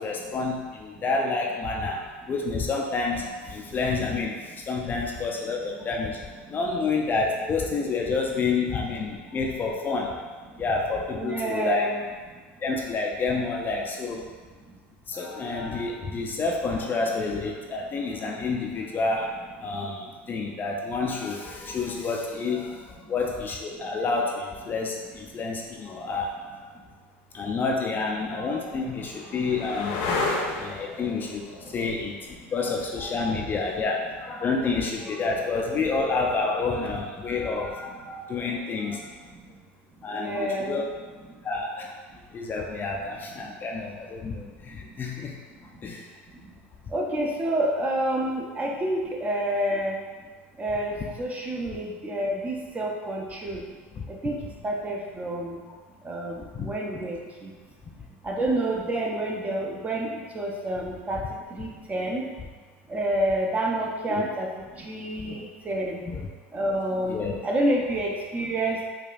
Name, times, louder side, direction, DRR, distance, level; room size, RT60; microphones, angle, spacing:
voice 1, 0.0-6.2 6.5-10.3 10.6-11.9 12.6-14.3 15.1-26.8 27.3-30.0 30.6-32.2 32.5-39.1 40.0-40.8 41.4-41.9 42.3-45.4 45.8-46.1 53.9-54.0 55.7-55.8 56.5-56.7 64.1-64.3 65.3-65.5 66.1-66.3 66.7-66.8 67.1-67.4, left 4 dB, 30° left, 0 dB, 0.4 m, -29 dB
voice 2, 11.1-12.0 40.1-40.8 46.9-50.0 50.6-53.6 54.2-54.3 54.6-55.6 56.0-57.5 58.2-61.2 61.5-62.2 62.9-64.5 64.8-66.0 66.5-67.2 67.4-68.8, right 1 dB, 20° right, -1 dB, 0.6 m, -28 dB
sound 1, 26.8-26.9 27.8-35.4 37.7-38.3, left 3 dB, 65° left, 0.7 m, -34 dB
4.7 x 2.4 x 2.4 m, 1.4 s
supercardioid pair, 100°, 7 cm